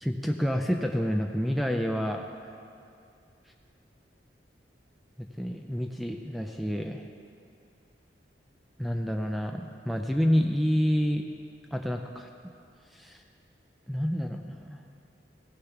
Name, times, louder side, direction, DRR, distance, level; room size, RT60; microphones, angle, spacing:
voice 1, 0.0-2.2 5.2-7.0 8.8-11.2 11.7-12.3 12.9-13.2 13.9-14.8, equal, ahead, 3 dB, 0.4 m, -28 dB
16.0 x 6.8 x 5.8 m, 2.5 s
head